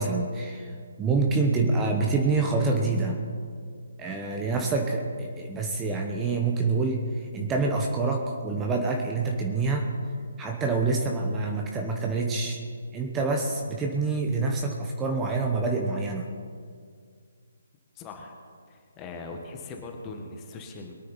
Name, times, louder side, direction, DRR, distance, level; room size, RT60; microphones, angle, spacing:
voice 1, 0.0-3.2 4.0-9.9 10.4-12.6 12.9-16.3, right 3 dB, 15° right, 1 dB, 1.1 m, -26 dB
voice 2, 18.0-18.4 18.7-20.9, left 3 dB, 20° left, 3 dB, 1.7 m, -40 dB
22.0 x 9.7 x 4.2 m, 2.2 s
figure-of-eight pair, 140°, 0 cm